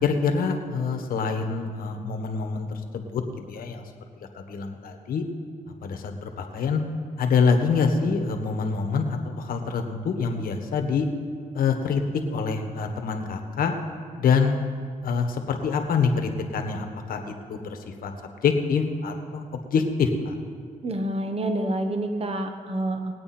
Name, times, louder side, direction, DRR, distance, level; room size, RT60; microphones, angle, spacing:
voice 1, 0.0-3.2 3.5-3.8 4.5-5.2 5.8-6.8 7.2-11.1 11.5-12.0 12.3-13.7 14.2-14.6 15.0-18.1 18.4-19.4 19.7-20.4, left 5 dB, 75° left, 5 dB, 1.4 m, -25 dB
voice 2, 20.8-23.2, right 1 dB, 40° right, 5 dB, 1.2 m, -28 dB
20.0 x 8.7 x 4.4 m, 2.1 s
cardioid pair, 80°, 15 cm